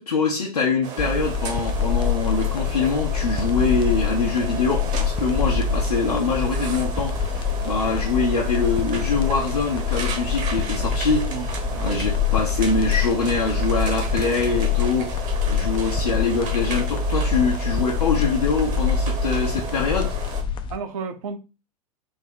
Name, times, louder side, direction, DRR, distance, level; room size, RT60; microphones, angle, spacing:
voice 1, 0.0-20.1, left 4 dB, 80° left, 0.8 m, -24 dB
sound 1, 0.8-20.4, right 5 dB, 40° right, 1.0 m, -34 dB
sound 2, 1.0-20.8, left 6 dB, 25° left, 0.4 m, -25 dB
voice 2, 11.3-12.1 20.7-21.4, right 6 dB, 60° right, 0.7 m, -33 dB
3.5 x 2.1 x 3.9 m
hypercardioid pair, 95°, 19 cm